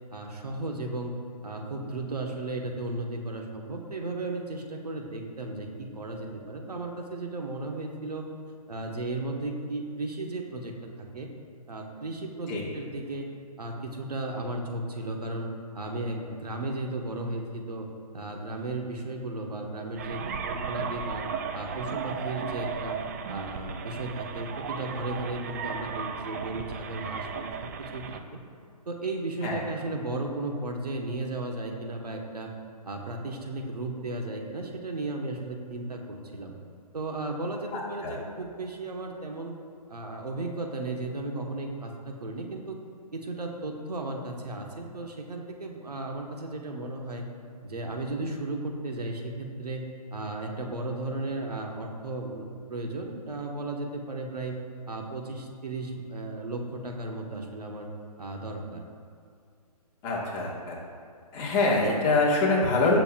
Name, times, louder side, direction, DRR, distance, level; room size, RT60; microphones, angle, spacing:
voice 1, 0.1-8.3 8.7-11.3 11.7-13.3 13.6-17.9 18.1-21.2 21.5-23.0 23.3-28.4 28.9-32.5 32.8-36.5 36.9-39.5 39.9-42.8 43.1-47.2 47.6-49.9 50.1-52.4 52.7-54.5 54.9-57.9 58.2-58.8, right 2 dB, 80° right, 1 dB, 1.5 m, -35 dB
sound 1, 20.0-28.2, right 6 dB, 25° right, 0.4 m, -35 dB
voice 2, 37.7-38.1 60.0-60.8 61.3-63.0, left 3 dB, 25° left, -4 dB, 1.8 m, -25 dB
15.5 x 6.9 x 2.5 m, 2.3 s
figure-of-eight pair, 145°, 20 cm